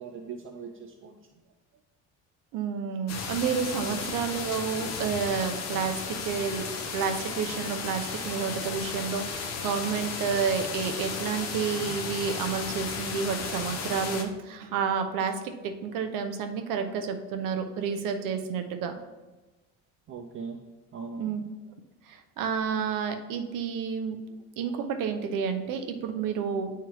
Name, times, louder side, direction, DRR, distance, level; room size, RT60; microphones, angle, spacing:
voice 1, 0.0-1.4 3.8-4.1 20.1-20.6 20.9-21.4, right 5 dB, 40° right, 4 dB, 0.5 m, -40 dB
voice 2, 2.5-18.9 21.2-21.4 22.1-26.7, right 6 dB, 70° right, 6 dB, 0.8 m, -30 dB
sound 1, 3.1-14.2, left 5 dB, 50° left, 0.8 m, -34 dB
10.0 x 3.6 x 3.0 m, 1.2 s
cardioid pair, 130°, 34 cm